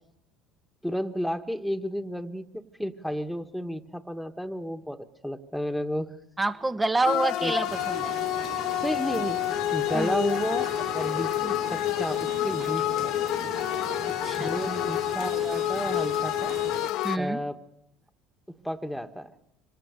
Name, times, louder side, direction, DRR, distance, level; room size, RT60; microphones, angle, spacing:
voice 1, 0.8-6.1 7.4-7.5 8.8-9.4 9.7-13.2 14.4-16.6 17.2-17.6 18.6-19.3, equal, ahead, 8 dB, 2.0 m, -32 dB
voice 2, 6.4-8.1 9.9-10.1 14.2-14.6 17.0-17.4, right 2 dB, 15° right, 12 dB, 1.5 m, -27 dB
sound 1, 7.0-17.2, left 14 dB, 65° left, 1.2 m, -28 dB
sound 2, 7.7-16.9, right 8 dB, 45° right, 1.1 m, -41 dB
26.0 x 26.0 x 6.9 m, 0.79 s
hypercardioid pair, 65°, 0 cm